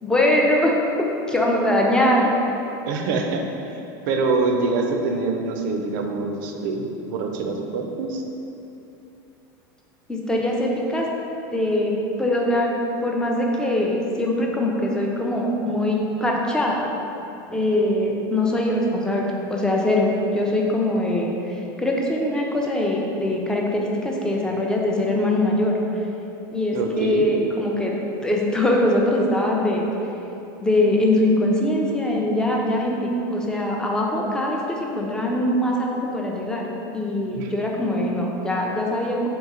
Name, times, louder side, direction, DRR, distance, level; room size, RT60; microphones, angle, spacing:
voice 1, 0.0-2.2 10.1-11.1 11.5-11.9 12.2-12.7 13.0-16.8 17.5-25.7 26.5-27.9 28.2-29.8 30.6-39.3, left 1 dB, 5° left, -1 dB, 0.4 m, -22 dB
voice 2, 2.9-3.4 4.1-8.2 26.7-27.2 37.3-37.5, right 3 dB, 70° right, 3 dB, 0.5 m, -25 dB
3.5 x 3.0 x 3.6 m, 2.9 s
supercardioid pair, 125°, 11 cm